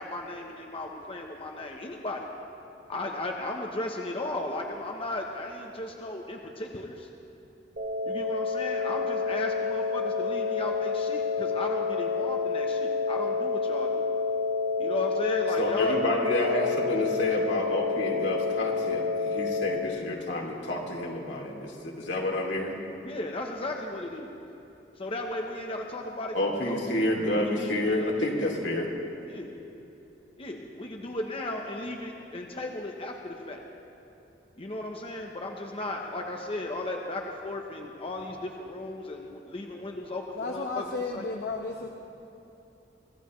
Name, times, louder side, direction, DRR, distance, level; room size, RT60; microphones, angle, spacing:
voice 1, 0.0-2.2 2.9-7.1 8.0-14.0 14.8-16.0 23.0-24.3 25.0-26.8 27.3-28.2 29.3-29.5 30.4-33.6 34.6-41.2, left 1 dB, 30° left, 1 dB, 0.9 m, -35 dB
sound 1, 7.8-19.8, left 5 dB, 60° right, 3.1 m, -29 dB
voice 2, 15.6-22.7 26.3-28.9, left 1 dB, 75° left, -2 dB, 2.7 m, -29 dB
voice 3, 40.4-41.9, left 3 dB, 60° left, 1 dB, 1.0 m, -33 dB
25.0 x 15.0 x 3.2 m, 2.9 s
head